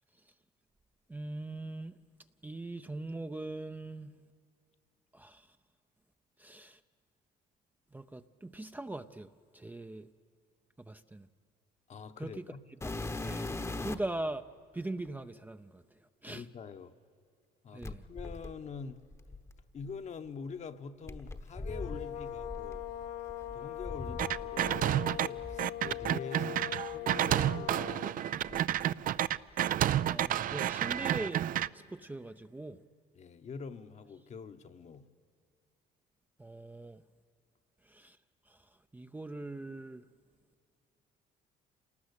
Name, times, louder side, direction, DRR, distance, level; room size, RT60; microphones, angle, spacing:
voice 1, 1.1-2.0 2.4-4.2 5.1-5.6 6.4-6.8 7.9-10.1 10.8-11.3 12.2-12.6 13.2-13.5 13.8-14.4 14.7-16.5 17.7-18.0 30.1-31.5 31.7-32.8 36.4-37.0 37.8-38.2 38.5-40.1, right 2 dB, 10° right, 0.6 m, -41 dB
voice 2, 11.9-12.6 13.8-14.0 16.3-16.9 17.6-19.0 19.7-22.8 23.5-28.7 33.1-35.1, left 5 dB, 45° left, 1.2 m, -45 dB
sound 1, 12.8-14.2 15.1-15.2 17.8-19.9 21.1-24.8 25.1-26.1 26.9-27.0 27.6-27.7 28.4-29.5 29.8-30.3 31.6-31.7, left 2 dB, 15° left, 1.0 m, -42 dB
sound 2, 21.5-28.2, left 12 dB, 90° left, 1.0 m, -41 dB
sound 3, 24.2-25.3 25.6-31.7, right 12 dB, 55° right, 0.5 m, -30 dB
28.0 x 19.0 x 8.2 m
cardioid pair, 110°, 17 cm